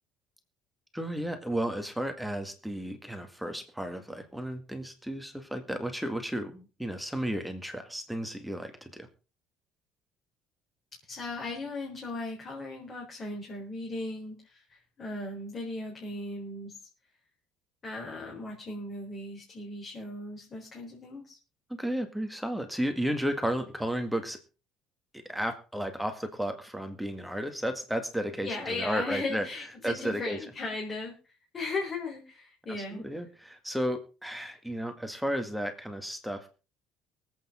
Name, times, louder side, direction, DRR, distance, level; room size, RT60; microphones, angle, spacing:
voice 1, 0.9-9.1 21.7-24.4 25.1-29.5 29.8-30.4 32.9-36.5, equal, ahead, 6 dB, 2.0 m, -33 dB
voice 2, 11.0-16.8 17.8-21.4 28.4-33.0, left 2 dB, 30° left, -1 dB, 4.2 m, -37 dB
24.0 x 8.5 x 3.8 m, 0.33 s
cardioid pair, 150°, 0 cm